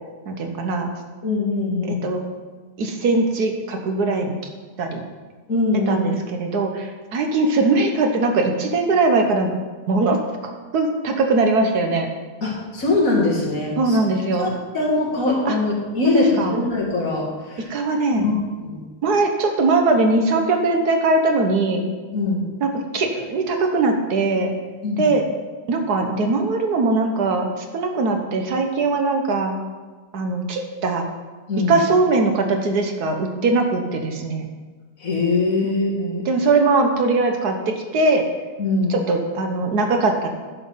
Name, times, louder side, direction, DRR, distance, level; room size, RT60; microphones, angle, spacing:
voice 1, 0.3-0.9 1.8-2.2 2.8-4.4 4.8-5.0 5.9-9.5 9.9-10.2 10.4-12.1 13.8-14.5 15.4-15.5 16.1-16.6 17.7-18.3 19.0-21.8 22.6-24.5 25.0-25.2 25.7-29.6 30.1-31.1 31.7-34.5 35.6-38.2 38.9-40.3, right 3 dB, 70° right, 4 dB, 1.5 m, -21 dB
voice 2, 1.2-2.0 5.5-6.0 12.4-14.0 14.4-17.7 18.1-18.3 18.6-18.8 22.1-22.5 24.8-25.1 31.5-31.7 35.0-36.2 38.6-38.9, left 3 dB, 55° left, -3 dB, 2.4 m, -22 dB
11.0 x 5.9 x 5.6 m, 1.4 s
omnidirectional pair, 1.8 m